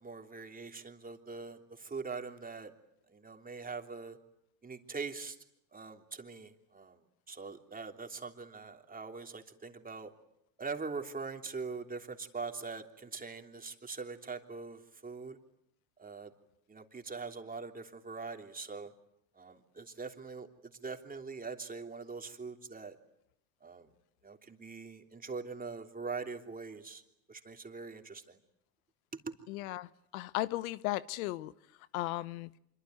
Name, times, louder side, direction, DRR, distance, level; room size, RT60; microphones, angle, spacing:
voice 1, 0.0-2.7 3.1-4.2 4.6-5.4 5.7-7.0 7.3-10.1 10.6-15.4 16.0-16.3 16.7-18.9 19.4-20.5 20.8-23.0 23.6-23.9 24.2-27.0 27.3-28.4 29.2-29.3, right 4 dB, 20° right, 3.2 m, -42 dB
voice 2, 29.5-29.9 30.1-31.5 31.9-32.5, left 17 dB, 80° left, 1.0 m, -35 dB
26.0 x 24.0 x 9.5 m
supercardioid pair, 90°, 42 cm